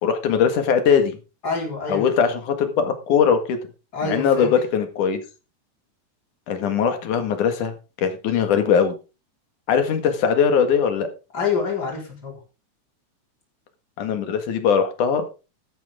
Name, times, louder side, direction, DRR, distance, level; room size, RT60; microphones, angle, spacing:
voice 1, 0.0-1.2 1.9-3.6 4.0-5.2 6.5-9.0 9.7-11.1 14.0-15.2, left 7 dB, 85° left, 7 dB, 3.3 m, -20 dB
voice 2, 1.4-2.1 3.9-4.5 11.3-12.4, left 4 dB, 30° left, -1 dB, 4.9 m, -26 dB
13.5 x 10.5 x 3.6 m, 0.31 s
omnidirectional pair, 3.5 m